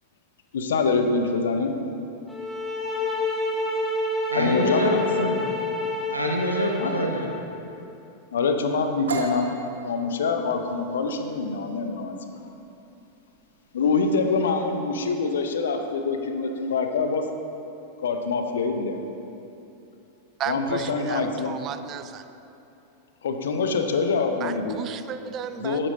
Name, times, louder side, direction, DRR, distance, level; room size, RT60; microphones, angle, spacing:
voice 1, 0.5-1.8 4.3-5.3 6.8-6.9 8.3-9.5 9.8-12.4 13.7-17.2 18.0-19.0 20.5-21.5 23.2-24.8 25.6-25.9, left 4 dB, 65° left, 6 dB, 0.7 m, -25 dB
sound 1, 2.3-7.3, left 2 dB, 5° left, 1.1 m, -28 dB
voice 2, 4.3-5.5 6.1-7.3, equal, 85° right, 0 dB, 1.0 m, -26 dB
sound 2, 9.1-16.7, right 3 dB, 65° right, 0.8 m, -38 dB
voice 3, 20.4-22.2 24.4-25.9, right 9 dB, 30° right, 11 dB, 0.4 m, -34 dB
12.0 x 8.5 x 2.7 m, 2.9 s
figure-of-eight pair, 90°, 0 cm